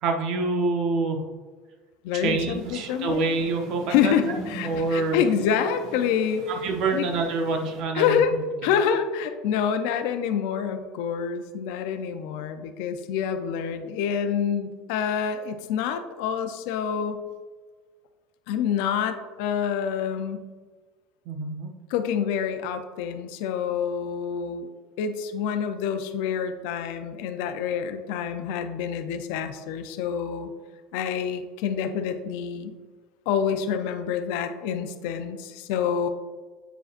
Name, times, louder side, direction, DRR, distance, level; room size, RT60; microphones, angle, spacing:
voice 1, 0.0-1.2 2.1-4.4 4.6-5.2 6.6-8.2 21.3-21.7, right 3 dB, 60° right, 3 dB, 0.9 m, -26 dB
voice 2, 2.0-3.2 3.9-6.5 6.9-7.1 7.9-8.3 8.6-17.2 18.5-20.4 21.9-24.7 25.0-30.5 30.9-32.7 33.3-36.1, left 7 dB, 75° left, 7 dB, 0.5 m, -27 dB
sound 1, 2.5-7.8, right 2 dB, 80° right, 1.8 m, -43 dB
7.7 x 4.9 x 2.5 m, 1.4 s
cardioid pair, 135°, 0 cm